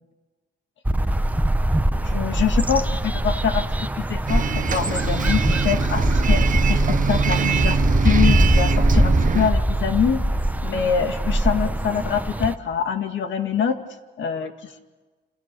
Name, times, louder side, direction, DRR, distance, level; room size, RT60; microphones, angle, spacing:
sound 1, 0.8-12.5, right 1 dB, 10° right, 1.0 m, -21 dB
voice 1, 2.0-3.6 4.0-10.2 10.6-13.8 14.2-14.8, left 7 dB, 70° left, 7 dB, 2.1 m, -25 dB
Bus, 4.3-9.5, right 7 dB, 40° right, 0.9 m, -24 dB
29.5 x 28.0 x 6.9 m, 1.3 s
cardioid pair, 90°, 20 cm